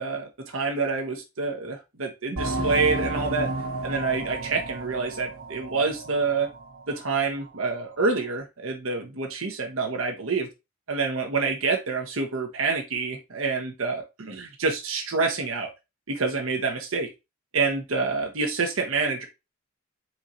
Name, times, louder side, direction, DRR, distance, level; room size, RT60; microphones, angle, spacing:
voice 1, 0.0-3.5 3.8-6.5 6.9-10.5 10.9-15.7 16.1-17.1 17.5-19.3, right 4 dB, 70° right, 3 dB, 1.1 m, -27 dB
sound 1, 2.4-6.6 7.0-7.1 7.6-7.7, right 2 dB, 90° right, 1.2 m, -32 dB
4.5 x 4.4 x 2.6 m, 0.24 s
head